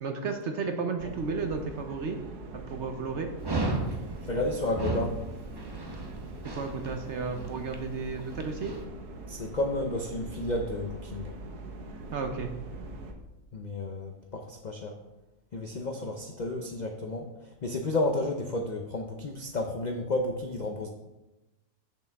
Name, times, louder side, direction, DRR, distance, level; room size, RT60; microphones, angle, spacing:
voice 1, 0.0-2.2 2.5-3.3 6.5-8.7 12.1-12.5, right 4 dB, 60° right, 5 dB, 0.9 m, -33 dB
sound 1, 1.0-13.1, right 2 dB, 80° right, 1.4 m, -42 dB
Dog, 3.4-8.8, right 2 dB, 25° right, 0.5 m, -35 dB
voice 2, 4.3-5.2 9.3-11.3 13.5-15.0 15.5-17.3 17.6-20.9, left 2 dB, 80° left, 3 dB, 0.4 m, -31 dB
8.2 x 6.9 x 3.4 m, 1.0 s
omnidirectional pair, 1.6 m